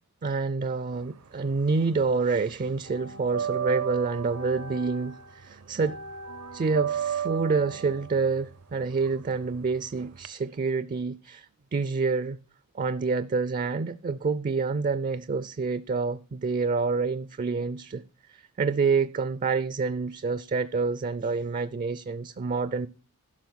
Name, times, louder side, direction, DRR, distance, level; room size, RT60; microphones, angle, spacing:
voice 1, 0.2-6.0 6.5-12.4 12.7-18.0 18.3-22.9, right 4 dB, 35° right, 0.4 m, -27 dB
sound 1, 1.0-2.1 2.4-10.3, right 8 dB, 75° right, 0.7 m, -34 dB
11.5 x 6.0 x 6.3 m
head